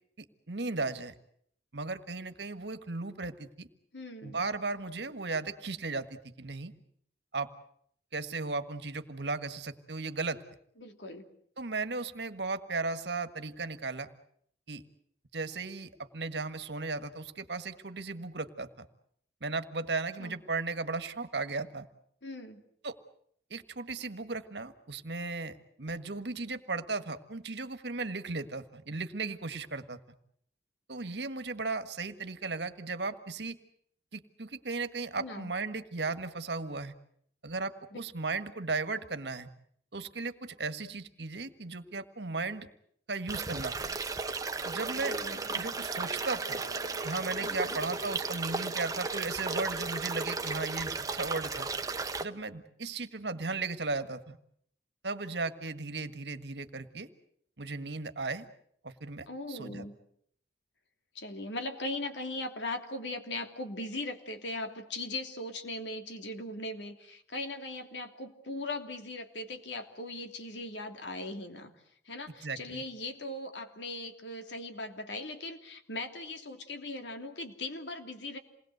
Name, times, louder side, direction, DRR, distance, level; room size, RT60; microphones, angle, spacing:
voice 1, 0.2-1.1 1.7-3.7 4.2-6.7 7.3-7.5 8.1-10.4 11.6-14.1 14.7-14.8 15.3-18.9 19.4-21.9 22.8-23.0 23.5-30.0 30.9-33.6 34.1-36.9 37.4-39.5 39.9-42.7 43.1-44.0 44.6-45.2 45.5-46.6 47.0-51.7 52.2-54.4 55.0-57.1 57.6-58.5 58.8-59.8 72.4-72.8, right 3 dB, 70° right, 10 dB, 1.7 m, -36 dB
voice 2, 3.9-4.4 10.8-11.3 20.2-20.4 22.2-22.6 35.2-35.5 37.9-38.0 45.1-45.6 47.4-47.8 59.3-59.9 61.1-71.7 72.1-78.4, left 2 dB, 85° left, 6 dB, 3.0 m, -39 dB
sound 1, 43.3-52.2, right 3 dB, 20° right, 1.2 m, -35 dB
sound 2, 44.7-50.6, right 2 dB, 70° left, 3.0 m, -52 dB
28.0 x 20.5 x 8.1 m, 0.67 s
head